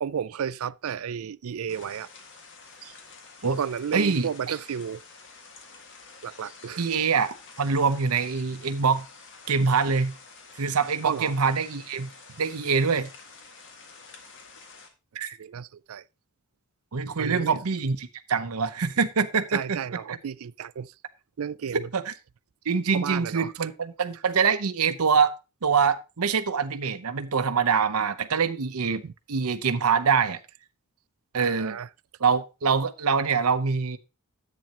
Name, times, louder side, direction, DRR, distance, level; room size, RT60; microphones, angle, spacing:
voice 1, 0.0-2.1 2.8-2.9 3.6-5.0 6.2-6.8 11.0-11.3 15.4-16.0 17.2-17.6 19.5-20.9 21.4-21.9 22.9-23.5 29.0-29.1 31.4-31.9, right 7 dB, 70° right, 0.4 m, -33 dB
sound 1, 1.7-14.9, left 4 dB, 60° left, 1.9 m, -49 dB
voice 2, 3.9-4.6 6.8-9.1 9.5-10.1 10.6-12.1 12.4-13.1 15.1-15.4 16.9-19.8 20.1-20.2 21.7-22.1 22.7-25.3 25.6-29.0 29.3-30.4 31.3-31.8 32.2-34.0, right 5 dB, 90° right, 0.8 m, -24 dB
10.5 x 8.5 x 2.9 m
head